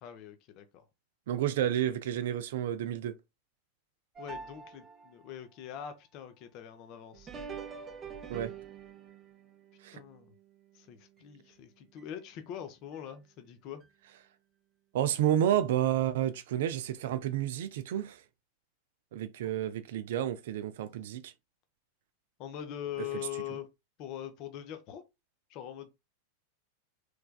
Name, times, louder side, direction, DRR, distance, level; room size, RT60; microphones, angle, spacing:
voice 1, 0.0-0.8 4.2-7.3 9.9-10.3 10.7-13.8 22.4-23.7 24.0-25.0 25.5-25.9, left 10 dB, 40° left, 0.5 m, -42 dB
voice 2, 1.3-3.1 8.3-8.5 9.8-10.0 14.9-18.2 19.1-21.3, right 11 dB, 55° right, 0.3 m, -30 dB
sound 1, 4.2-5.3 7.1-11.5 12.0-12.1 12.9-13.0 13.8-13.9, right 6 dB, 20° right, 0.6 m, -46 dB
3.3 x 3.2 x 2.2 m
figure-of-eight pair, 90°, 0 cm